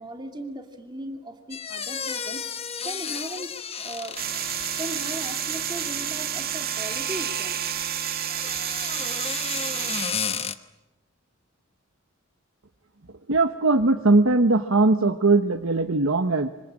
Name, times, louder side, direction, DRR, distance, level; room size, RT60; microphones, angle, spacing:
voice 1, 0.0-4.2 4.8-7.6, right 1 dB, 20° right, 4 dB, 2.6 m, -37 dB
sound 1, 1.5-6.3 8.3-10.5, left 6 dB, 30° left, 1.1 m, -33 dB
sound 2, 4.2-10.1, right 9 dB, 45° right, 2.0 m, -29 dB
voice 2, 13.3-16.5, right 3 dB, 75° right, 5 dB, 1.2 m, -20 dB
25.5 x 25.5 x 8.8 m, 1.0 s
head